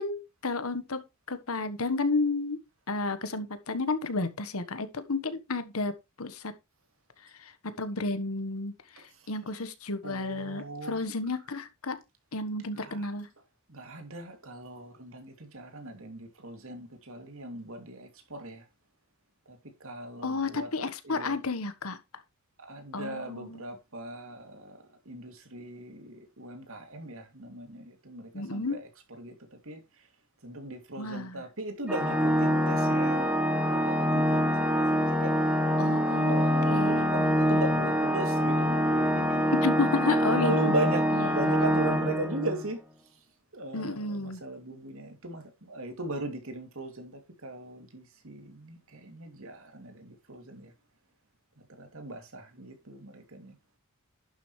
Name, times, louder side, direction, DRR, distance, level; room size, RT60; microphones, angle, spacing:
voice 1, 0.0-2.6 2.9-5.9 6.2-6.5 7.4-7.5 7.8-12.0 12.3-13.3 20.2-22.0 22.9-23.6 28.3-28.8 31.0-31.4 35.8-37.1 39.5-40.6 41.1-41.5 43.7-44.4, left 3 dB, 75° left, 1.4 m, -32 dB
voice 2, 10.0-11.0 12.7-13.1 13.7-18.6 19.5-21.4 22.7-24.8 25.0-29.3 29.6-29.8 30.4-33.3 33.7-35.3 36.2-42.8 43.5-50.7 51.8-53.5, right 1 dB, 65° right, 2.9 m, -38 dB
Organ, 31.9-42.7, equal, 5° right, 1.7 m, -25 dB
11.5 x 7.4 x 3.3 m
head